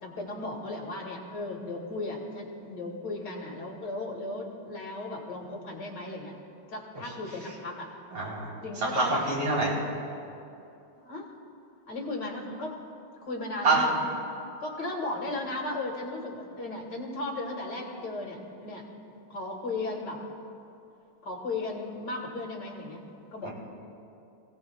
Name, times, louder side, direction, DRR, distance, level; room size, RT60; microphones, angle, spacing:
voice 1, 0.0-6.4 6.7-7.9 8.6-9.3 11.0-11.3 11.9-12.8 13.2-13.9 14.6-20.2 21.2-23.0 23.3-23.5, left 2 dB, 55° left, -1 dB, 2.5 m, -36 dB
voice 2, 8.1-8.5 8.9-9.7 13.6-13.8 23.4-23.5, right 3 dB, 70° right, -6 dB, 4.8 m, -25 dB
27.0 x 17.5 x 2.4 m, 2.8 s
omnidirectional pair, 2.3 m